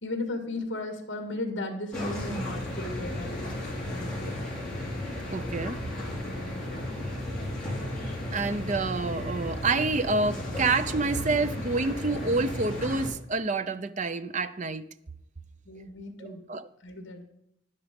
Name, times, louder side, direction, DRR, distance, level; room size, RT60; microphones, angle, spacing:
voice 1, 0.0-3.5 3.9-4.5 6.2-6.6 15.7-16.4 16.8-17.2, left 2 dB, 60° left, 1.8 m, -36 dB
sound 1, 1.9-13.1, left 1 dB, 5° left, 3.6 m, -34 dB
voice 2, 5.3-5.8 8.3-14.9 16.2-16.7, right 3 dB, 35° right, 0.5 m, -28 dB
11.0 x 9.8 x 5.2 m
head